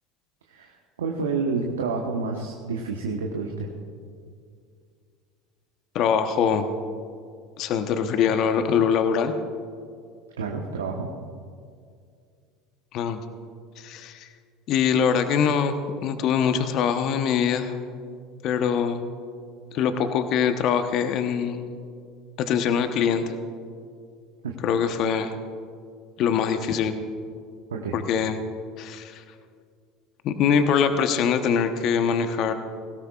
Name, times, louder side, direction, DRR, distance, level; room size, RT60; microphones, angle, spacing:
voice 1, 0.5-3.7 10.4-11.1 24.4-24.5 27.7-27.9, right 4 dB, 80° right, 1 dB, 1.1 m, -29 dB
voice 2, 5.9-6.7 7.6-9.3 12.9-13.2 13.8-14.3 14.7-15.7 16.0-17.8 18.4-19.0 19.7-21.7 22.4-23.2 24.6-25.3 26.2-26.9 27.9-28.4 28.8-29.2 30.2-32.5, left 7 dB, 50° left, 8 dB, 1.0 m, -23 dB
20.5 x 17.0 x 2.4 m, 2.2 s
hypercardioid pair, 75°, 0 cm